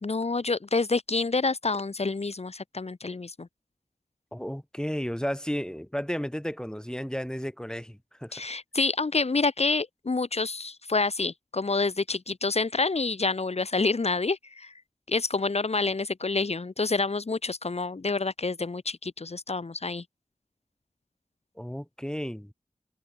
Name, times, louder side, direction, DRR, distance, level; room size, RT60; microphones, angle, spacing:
voice 1, 0.0-3.5 8.3-14.7 15.1-20.0, left 3 dB, 55° left, 1.1 m, -28 dB
voice 2, 4.3-8.3 21.6-22.5, equal, 5° left, 2.7 m, -33 dB
wide cardioid pair, 40°, 13 cm